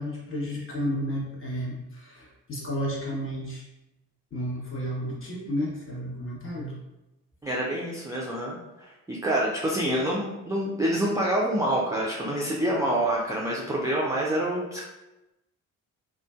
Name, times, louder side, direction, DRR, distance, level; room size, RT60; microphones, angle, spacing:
voice 1, 0.0-3.6 4.3-6.8, equal, 30° left, -4 dB, 0.9 m, -32 dB
voice 2, 7.4-8.6 9.1-14.9, right 1 dB, 10° right, -5 dB, 0.4 m, -26 dB
2.4 x 2.2 x 2.3 m, 0.98 s
hypercardioid pair, 40°, 44 cm